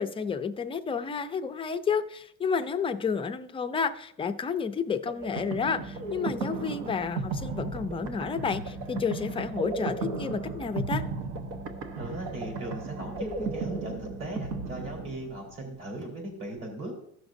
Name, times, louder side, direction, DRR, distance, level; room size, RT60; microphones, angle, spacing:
voice 1, 0.0-11.0, left 6 dB, 15° left, 8 dB, 0.3 m, -31 dB
Organ, 5.1-15.4, right 2 dB, 20° right, 1.5 m, -44 dB
sound 1, 5.1-15.6, right 3 dB, 85° right, 1.2 m, -35 dB
voice 2, 12.0-16.9, right 1 dB, 40° right, 0 dB, 4.2 m, -38 dB
15.5 x 6.0 x 2.6 m, 0.70 s
cardioid pair, 145°, 40 cm